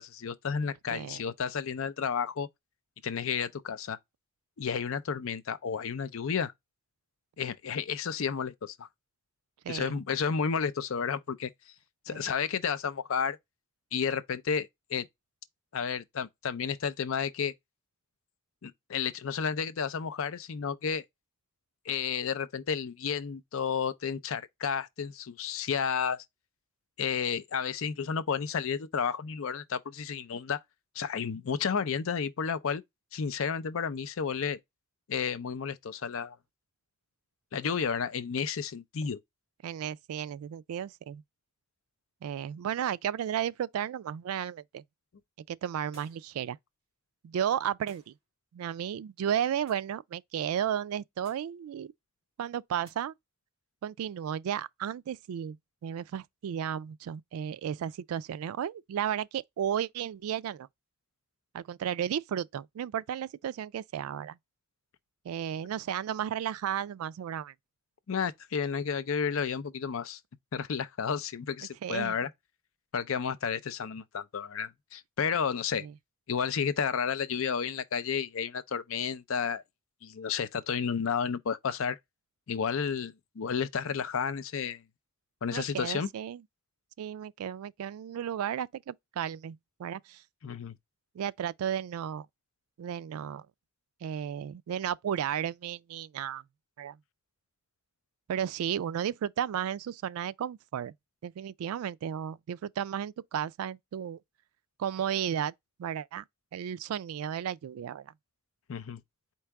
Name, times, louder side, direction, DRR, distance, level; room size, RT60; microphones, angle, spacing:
voice 1, 0.0-2.5 3.0-4.0 4.6-6.5 7.4-8.9 9.7-11.5 12.1-13.4 13.9-15.1 15.7-17.5 18.6-21.0 21.9-26.2 27.0-30.6 31.0-32.8 33.1-34.6 35.1-36.4 37.5-39.2 68.1-70.2 70.5-72.3 72.9-75.9 76.3-79.6 80.0-82.0 82.5-84.8 85.4-86.1 90.4-90.8 108.7-109.0, left 6 dB, 65° left, 0.5 m, -32 dB
voice 2, 0.9-1.2 9.6-10.0 12.1-12.3 39.6-41.2 42.2-44.8 45.5-46.6 47.2-48.1 48.5-51.9 52.4-53.1 53.8-55.6 55.8-60.7 61.5-64.4 65.2-67.5 71.8-72.2 75.8-75.9 85.5-86.4 87.0-90.2 91.1-92.3 92.8-93.5 94.0-96.4 96.8-97.0 98.3-100.9 101.2-104.2 104.8-105.5 105.8-106.2 106.5-108.1, right 9 dB, 85° right, 0.3 m, -34 dB
sound 1, 45.9-46.4 47.9-48.2 49.7-49.9 51.2-51.6 52.8-53.0, right 1 dB, 25° right, 1.9 m, -58 dB
4.6 x 2.9 x 3.4 m
head